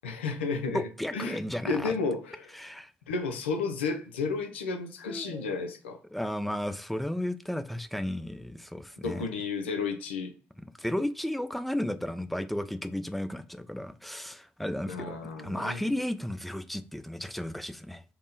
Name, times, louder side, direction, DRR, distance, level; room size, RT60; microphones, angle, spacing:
voice 1, 0.0-0.8 1.1-1.4 1.6-2.5 3.1-6.0 9.0-10.3 14.9-15.8, left 4 dB, 90° left, 0.4 m, -32 dB
voice 2, 0.7-2.0 2.5-2.9 5.1-5.5 6.1-9.3 10.6-18.0, left 1 dB, ahead, 0.4 m, -34 dB
3.5 x 2.1 x 3.9 m
hypercardioid pair, 45°, 6 cm